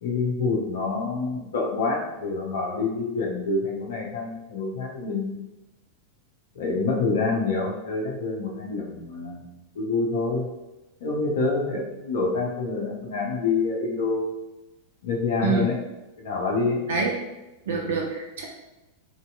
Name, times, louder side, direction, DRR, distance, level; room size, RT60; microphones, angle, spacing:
voice 1, 0.0-5.4 6.6-10.5 11.0-14.3 15.0-15.8 16.2-16.8, left 3 dB, 60° left, -1 dB, 0.6 m, -27 dB
voice 2, 17.7-18.4, right 4 dB, 60° right, -1 dB, 0.4 m, -25 dB
3.1 x 2.8 x 2.2 m, 1.0 s
figure-of-eight pair, 90°, 0 cm